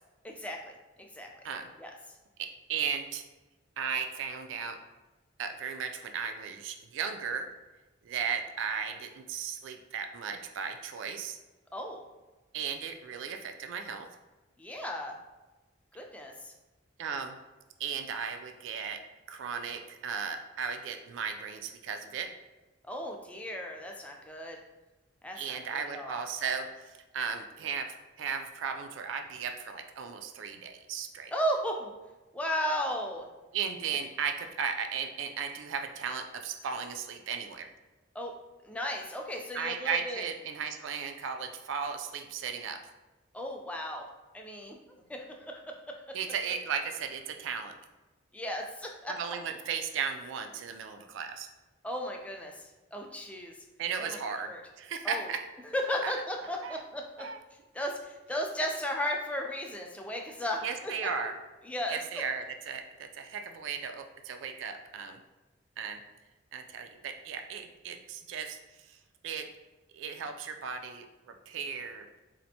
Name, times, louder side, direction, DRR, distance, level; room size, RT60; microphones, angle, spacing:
voice 1, 0.2-1.3 1.8-1.9 11.7-12.0 14.6-15.1 15.9-16.5 22.9-24.6 25.2-26.2 31.3-31.9 32.3-33.3 38.1-38.3 38.6-40.3 43.3-44.0 44.3-46.0 48.3-49.1 51.8-53.5 54.0-54.2 54.5-54.6 55.0-55.3 55.7-57.3 57.7-61.1 61.7-62.0, equal, 5° left, 1 dB, 0.3 m, -35 dB
voice 2, 2.4-3.2 3.8-4.8 5.4-7.5 8.0-11.4 12.5-14.1 17.0-17.4 17.8-19.0 19.3-22.3 25.3-31.3 33.5-37.7 39.5-42.8 46.1-47.7 49.1-51.5 53.8-55.4 56.0-56.1 56.6-56.8 57.2-57.4 60.6-61.3 61.9-65.2 65.8-66.0 66.5-69.0 69.2-69.5 69.9-71.1 71.5-72.1, right 6 dB, 75° right, 6 dB, 0.3 m, -36 dB
4.2 x 2.5 x 2.7 m, 1.1 s
head